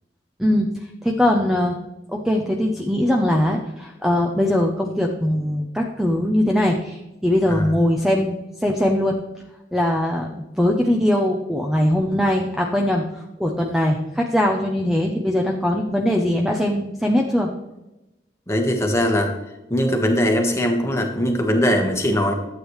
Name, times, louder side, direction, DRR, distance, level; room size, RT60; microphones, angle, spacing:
voice 1, 1.0-1.8 2.1-9.2 9.7-13.0 13.4-17.5, left 1 dB, ahead, 1 dB, 0.7 m, -21 dB
voice 2, 18.5-19.3 19.7-22.3, equal, 15° left, 3 dB, 1.4 m, -20 dB
12.5 x 8.2 x 3.2 m, 0.96 s
head